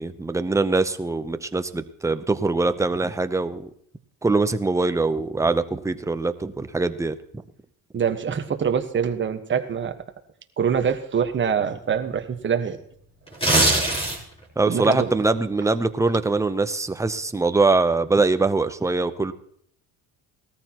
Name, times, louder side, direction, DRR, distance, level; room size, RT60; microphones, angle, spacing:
voice 1, 0.0-3.7 4.2-7.2 14.6-19.3, right 3 dB, 10° right, 10 dB, 0.7 m, -23 dB
voice 2, 7.9-9.9 10.6-12.8 13.4-13.5 14.6-15.1, right 7 dB, 30° right, 7 dB, 1.3 m, -24 dB
sound 1, 13.3-14.4 14.8-15.0, right 2 dB, 15° left, 3.9 m, -20 dB
18.5 x 13.5 x 3.0 m, 0.66 s
cardioid pair, 110°, 38 cm